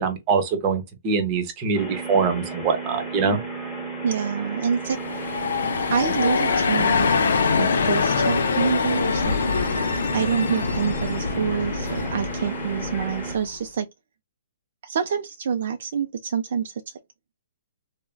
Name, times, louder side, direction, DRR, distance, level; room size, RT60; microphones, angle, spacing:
voice 1, 0.0-3.4, right 5 dB, 25° right, 0.8 m, -23 dB
sound 1, 1.7-13.4, right 3 dB, ahead, 1.1 m, -33 dB
voice 2, 4.0-5.0 5.9-7.1 7.6-9.3 10.1-13.9 14.8-16.7, right 7 dB, 60° right, 0.4 m, -26 dB
sound 2, 4.8-13.6, left 5 dB, 85° left, 0.6 m, -24 dB
3.3 x 2.1 x 2.2 m
hypercardioid pair, 160°, 0 cm